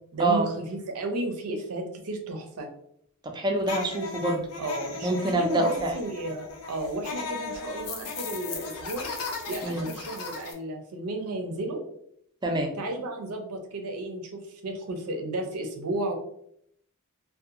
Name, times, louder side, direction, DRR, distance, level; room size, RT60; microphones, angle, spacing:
voice 1, 0.1-2.7 4.6-9.1 9.5-11.8 12.8-16.1, right 2 dB, 80° right, 4 dB, 0.6 m, -33 dB
voice 2, 3.2-4.4 5.0-6.0 9.6-9.9 12.4-12.7, right 2 dB, 20° right, 2 dB, 0.4 m, -26 dB
sound 1, 3.6-10.5, left 4 dB, 80° left, 0.5 m, -37 dB
2.7 x 2.2 x 2.5 m, 0.71 s
head